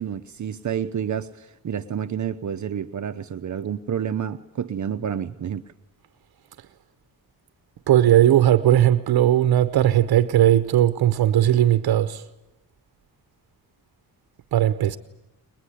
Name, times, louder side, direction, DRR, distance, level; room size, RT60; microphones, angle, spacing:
voice 1, 0.0-5.7, right 8 dB, 55° right, 0.8 m, -29 dB
voice 2, 7.9-12.2 14.5-15.0, right 12 dB, 90° right, 0.8 m, -18 dB
22.5 x 21.0 x 10.0 m
cardioid pair, 100°, 36 cm